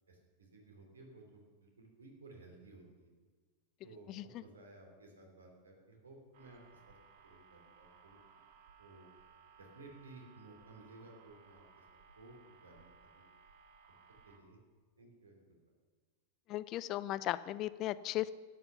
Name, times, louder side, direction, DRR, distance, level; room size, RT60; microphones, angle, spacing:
voice 1, 0.1-3.1 3.8-7.0 7.2-8.2 8.8-9.1 9.6-11.8 12.2-13.3 14.2-14.6 15.0-15.6, right 2 dB, 70° right, 2 dB, 2.9 m, -57 dB
voice 2, 4.1-4.4 16.5-18.3, left 14 dB, 35° left, 17 dB, 0.4 m, -37 dB
sound 1, 6.3-14.4, right 6 dB, 50° right, 1.3 m, -62 dB
13.0 x 9.3 x 5.8 m, 1.4 s
figure-of-eight pair, 90°, 0 cm